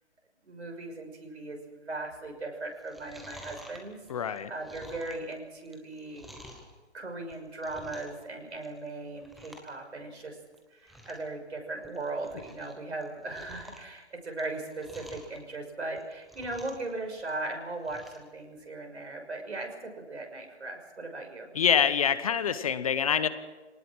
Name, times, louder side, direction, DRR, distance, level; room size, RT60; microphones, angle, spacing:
voice 1, 0.4-6.3 6.9-10.4 10.7-21.5, right 2 dB, 75° right, 3 dB, 6.2 m, -38 dB
Chewing mastication, 2.7-6.7 7.2-8.2 8.5-8.9 9.2-9.7 10.0-10.1 10.5-10.6 10.8-11.3 11.7-12.7 13.0-15.4 15.8-16.9 17.2-18.2 18.6-18.7, equal, ahead, 0.7 m, -50 dB
voice 2, 4.1-4.5 21.5-23.3, left 8 dB, 30° left, 13 dB, 0.9 m, -25 dB
23.5 x 19.0 x 6.2 m, 1.2 s
hypercardioid pair, 150°, 34 cm